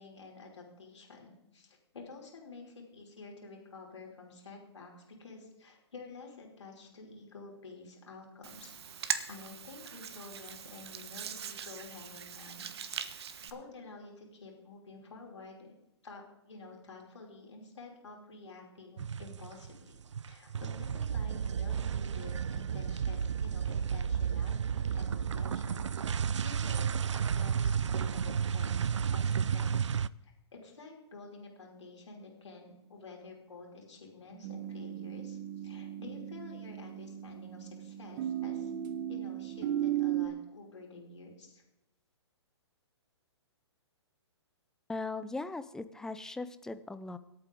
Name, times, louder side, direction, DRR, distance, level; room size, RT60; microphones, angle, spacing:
voice 1, 0.0-12.7 13.4-15.7 16.0-20.0 20.3-26.2 26.4-29.9 30.2-38.7 39.1-41.6, left 3 dB, 80° left, 0 dB, 5.1 m, -50 dB
Hands, 8.4-13.5, right 7 dB, 65° right, 1.4 m, -40 dB
sound 1, 19.0-19.7 20.0-30.1, right 7 dB, 85° right, 0.5 m, -32 dB
sound 2, 34.4-40.3, right 11 dB, 40° right, 1.5 m, -36 dB
voice 2, 44.9-47.2, left 3 dB, 5° left, 12 dB, 0.6 m, -39 dB
24.5 x 8.9 x 3.8 m, 0.91 s
hypercardioid pair, 135°, 15 cm